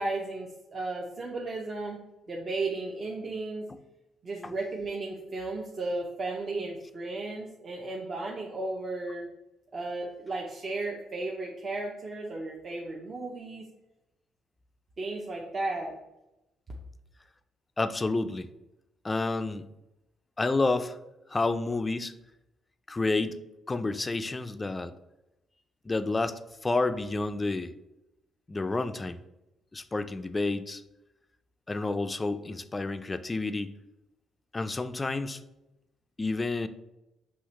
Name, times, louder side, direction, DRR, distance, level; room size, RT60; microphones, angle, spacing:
voice 1, 0.0-2.0 2.3-3.7 4.2-9.3 9.7-13.6 15.0-16.0, right 2 dB, 40° right, -1 dB, 0.6 m, -34 dB
voice 2, 17.8-18.5 19.0-19.7 20.4-21.0 21.3-22.1 22.9-23.4 23.7-24.9 25.8-27.7 28.5-29.2 29.7-30.8 31.7-33.7 34.5-35.4 36.2-36.7, left 3 dB, 25° left, 10 dB, 0.3 m, -29 dB
5.6 x 2.8 x 3.2 m, 0.93 s
cardioid pair, 90°, 0 cm